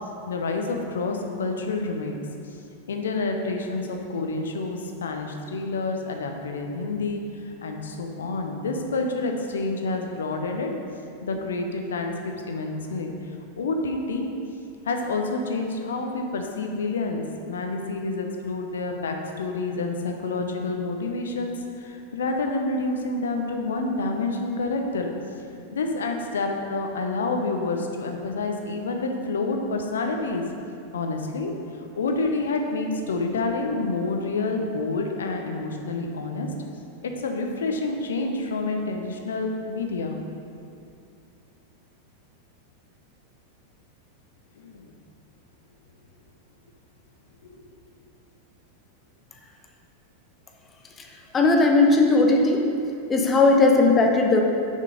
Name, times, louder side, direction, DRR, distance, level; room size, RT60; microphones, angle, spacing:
voice 1, 0.3-2.2 2.9-10.7 11.2-12.1 12.4-13.1 13.6-14.3 14.8-25.1 25.7-30.5 30.9-31.5 31.8-36.5 37.0-40.2 44.6-44.9 47.4-47.6, left 3 dB, 65° left, 3 dB, 0.8 m, -28 dB
voice 2, 51.3-52.7 53.1-54.4, left 3 dB, 20° left, 1 dB, 0.8 m, -17 dB
6.5 x 5.7 x 5.0 m, 2.5 s
figure-of-eight pair, 90°, 0 cm